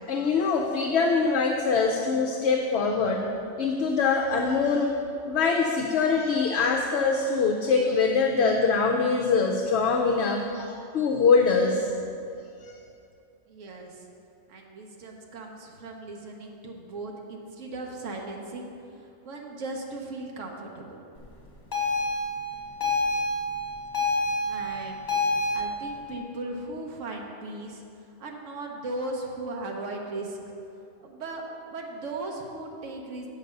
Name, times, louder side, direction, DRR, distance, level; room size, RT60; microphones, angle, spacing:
voice 1, 0.0-3.2 3.6-4.9 5.3-11.9 12.6-12.8, left 4 dB, 65° left, 1 dB, 0.8 m, -23 dB
voice 2, 13.5-14.1 14.5-18.7 19.0-21.0 24.5-27.8 28.2-30.4 31.0-33.3, right 2 dB, 85° right, 0 dB, 1.3 m, -37 dB
sound 1, 21.7-25.6, left 2 dB, 40° left, 1.5 m, -27 dB
8.0 x 5.3 x 6.5 m, 2.5 s
omnidirectional pair, 1.3 m